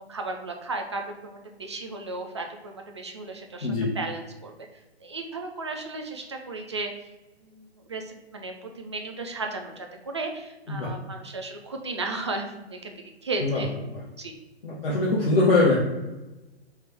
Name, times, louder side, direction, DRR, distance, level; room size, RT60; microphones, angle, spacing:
voice 1, 0.0-3.7 3.9-4.5 5.0-6.9 7.4-13.7 14.2-14.3, right 3 dB, 25° right, 3 dB, 0.3 m, -35 dB
voice 2, 3.6-3.9 10.7-10.9 13.4-13.7 14.6-15.8, left 2 dB, 60° left, -4 dB, 1.0 m, -22 dB
3.5 x 3.3 x 4.1 m, 1.1 s
figure-of-eight pair, 130°, 33 cm